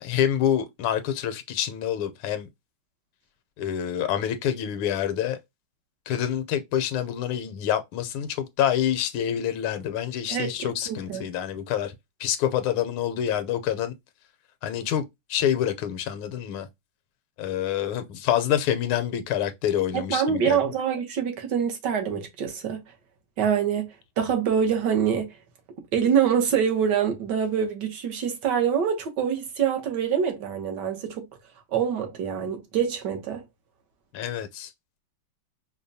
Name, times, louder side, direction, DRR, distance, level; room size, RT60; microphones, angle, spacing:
voice 1, 0.0-2.5 3.6-5.4 6.1-11.9 12.2-13.9 14.6-15.0 15.3-16.7 17.4-20.7 34.1-34.7, left 10 dB, 75° left, 1.4 m, -27 dB
voice 2, 10.3-11.2 19.9-22.8 23.4-23.9 24.2-25.3 25.9-31.3 31.7-33.4, right 8 dB, 60° right, 1.4 m, -25 dB
5.1 x 2.2 x 2.7 m
omnidirectional pair, 2.4 m